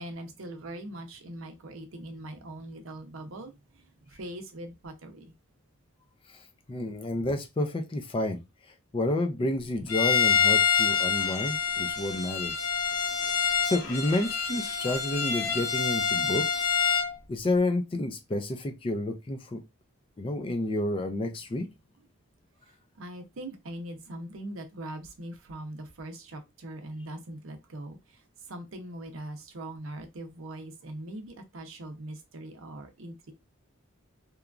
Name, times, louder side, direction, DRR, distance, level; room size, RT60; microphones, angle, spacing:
voice 1, 0.0-5.3 23.0-28.2 28.5-33.3, right 1 dB, 70° right, 0.6 m, -41 dB
voice 2, 6.7-8.4 8.9-12.7 13.6-16.7 17.3-19.6 20.2-21.7, left 2 dB, 25° left, 0.4 m, -30 dB
Bowed string instrument, 9.9-17.1, left 6 dB, 75° left, 0.8 m, -26 dB
2.9 x 2.3 x 2.4 m
head